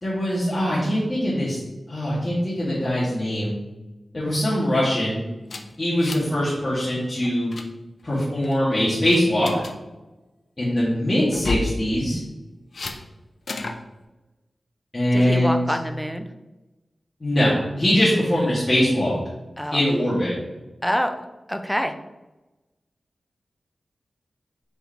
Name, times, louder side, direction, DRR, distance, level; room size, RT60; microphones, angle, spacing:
voice 1, 0.0-1.6 1.9-3.5 4.1-5.2 5.8-7.5 8.0-9.5 10.6-12.2 14.9-15.6 17.2-19.1 19.7-20.3, equal, 35° left, -9 dB, 2.2 m, -22 dB
sound 1, 5.5-6.4 6.6-6.9 7.2-7.7 8.2-8.6 9.0-9.7 11.3-11.7 12.7-13.0 13.5-13.8, left 3 dB, 65° left, 0.6 m, -31 dB
voice 2, 15.1-16.3 19.6-19.8 20.8-21.2 21.5-21.9, equal, ahead, 7 dB, 0.6 m, -26 dB
5.4 x 4.9 x 4.4 m, 1.1 s
wide cardioid pair, 95°, 0 cm